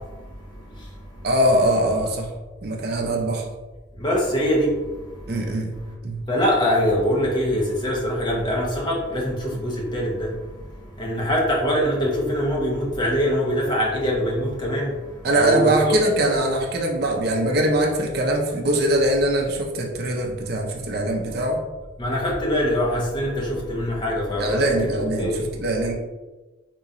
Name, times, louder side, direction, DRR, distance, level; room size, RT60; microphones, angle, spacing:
voice 1, 1.2-2.3 2.6-3.4 5.3-5.7 6.0-6.3 15.2-21.6 24.4-25.9, right 1 dB, 55° right, 1 dB, 0.5 m, -22 dB
voice 2, 4.0-4.7 6.3-10.3 11.0-14.9 15.4-16.0 22.0-24.9 25.2-25.4, equal, 25° left, -3 dB, 0.7 m, -23 dB
3.7 x 3.0 x 2.5 m, 1.2 s
head